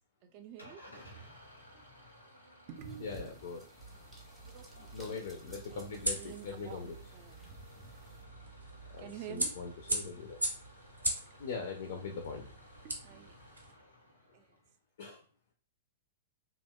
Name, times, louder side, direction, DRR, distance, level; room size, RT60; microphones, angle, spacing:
voice 1, 0.2-0.8 1.1-1.4 1.7-1.9 2.7-3.5 4.4-5.3 5.7-5.8 6.2-7.4 9.0-9.5 11.2-11.4 12.8-13.4 14.3-14.6, right 9 dB, 40° right, 8 dB, 0.3 m, -49 dB
Engine starting / Idling, 0.6-14.7, left 1 dB, 90° left, 0.7 m, -57 dB
sound 1, 2.8-8.2, right 2 dB, 10° right, 0.7 m, -55 dB
voice 2, 3.0-3.6 4.9-7.0 8.9-10.4 11.4-12.5 15.0-15.2, left 4 dB, 60° left, 3 dB, 0.4 m, -41 dB
sound 2, 3.8-13.7, right 1 dB, 85° right, 0.6 m, -41 dB
2.7 x 2.0 x 2.2 m, 0.41 s
figure-of-eight pair, 105°, 0 cm